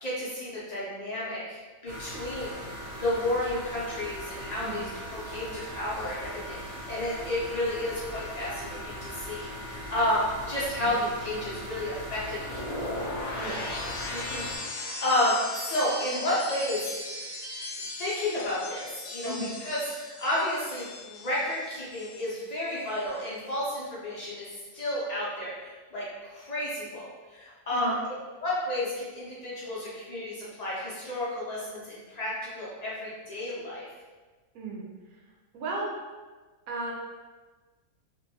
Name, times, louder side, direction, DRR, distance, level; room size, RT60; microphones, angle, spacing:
voice 1, 0.0-2.6 2.9-12.9 14.1-16.9 18.0-19.3 19.6-28.0 28.4-33.9, left 1 dB, 90° left, -8 dB, 0.3 m, -31 dB
sound 1, 1.9-14.6, equal, 55° right, 0.9 m, -40 dB
sound 2, 12.3-22.4 22.7-23.1, left 2 dB, 65° left, 0.7 m, -38 dB
voice 2, 19.2-19.5 27.7-27.9 34.5-34.8 35.5-35.9 36.7-36.9, right 2 dB, 80° right, -3 dB, 1.1 m, -34 dB
2.6 x 2.2 x 2.6 m, 1.3 s
omnidirectional pair, 1.5 m